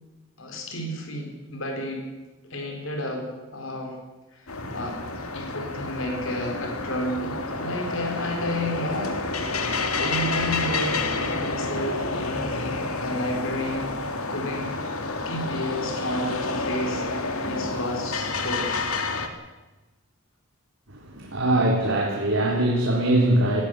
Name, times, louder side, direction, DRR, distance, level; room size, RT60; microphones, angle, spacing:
voice 1, 0.4-2.0 2.5-3.9 4.3-5.0 5.3-9.6 9.9-13.9 14.3-18.9, left 1 dB, 65° left, 2 dB, 4.5 m, -32 dB
sound 1, 4.5-19.3, left 3 dB, 90° left, 2.3 m, -29 dB
voice 2, 20.9-23.6, right 1 dB, 65° right, -1 dB, 3.6 m, -22 dB
19.5 x 15.0 x 9.8 m, 1.2 s
head